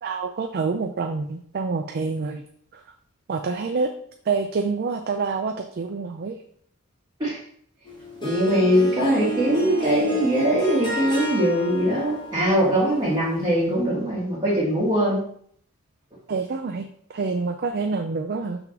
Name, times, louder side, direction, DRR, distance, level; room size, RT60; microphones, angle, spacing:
voice 1, 0.0-2.4 2.7-2.8 3.3-3.9 4.3-6.4 16.3-18.6, right 4 dB, 45° right, 6 dB, 0.4 m, -27 dB
Harp, 7.9-13.6, right 2 dB, 20° left, 1.6 m, -33 dB
voice 2, 8.2-15.2, equal, 20° right, -8 dB, 1.8 m, -21 dB
5.9 x 3.5 x 5.9 m, 0.63 s
head